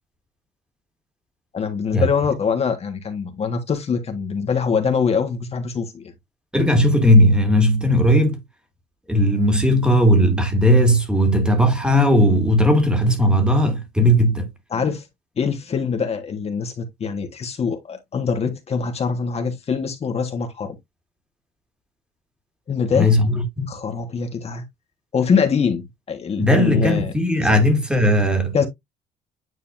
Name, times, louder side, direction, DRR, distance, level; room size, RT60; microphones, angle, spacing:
voice 1, 1.5-6.1 14.7-15.1 15.4-20.7 22.7-23.1 23.7-24.6 25.1-27.1 28.5-28.7, left 6 dB, 35° left, 1.5 m, -23 dB
voice 2, 6.5-8.4 9.1-14.5 22.9-23.7 26.4-28.7, equal, 5° right, 2.0 m, -17 dB
9.4 x 4.0 x 2.6 m
cardioid pair, 110°, 17 cm